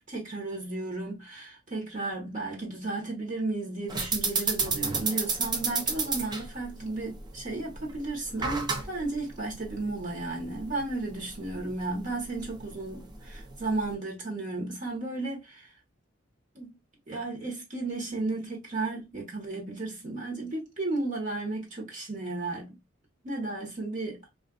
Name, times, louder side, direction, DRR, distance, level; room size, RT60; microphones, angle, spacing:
voice 1, 0.0-15.7 16.5-16.8 17.1-22.8 23.2-24.2, right 2 dB, 40° right, 1.1 m, -34 dB
sound 1, 3.9-13.9, right 4 dB, 20° right, 0.5 m, -33 dB
3.8 x 2.5 x 2.4 m
head